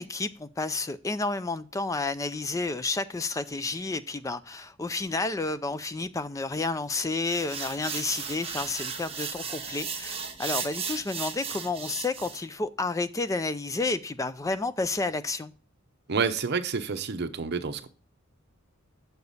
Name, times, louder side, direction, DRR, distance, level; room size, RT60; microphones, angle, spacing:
voice 1, 0.0-15.5, left 3 dB, 15° left, 0.4 m, -31 dB
sound 1, 7.3-12.4, right 6 dB, 30° right, 1.2 m, -35 dB
voice 2, 16.1-17.9, right 5 dB, 55° right, 0.8 m, -29 dB
8.0 x 6.8 x 4.1 m
head